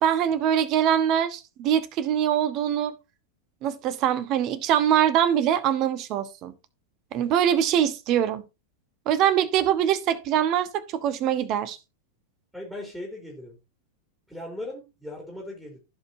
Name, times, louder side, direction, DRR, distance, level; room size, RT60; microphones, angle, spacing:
voice 1, 0.0-2.9 3.6-6.5 7.1-8.4 9.1-11.8, right 10 dB, 40° right, 1.1 m, -23 dB
voice 2, 12.5-13.6 14.3-15.8, left 1 dB, ahead, 3.4 m, -38 dB
16.0 x 5.4 x 2.7 m
figure-of-eight pair, 90°, 0 cm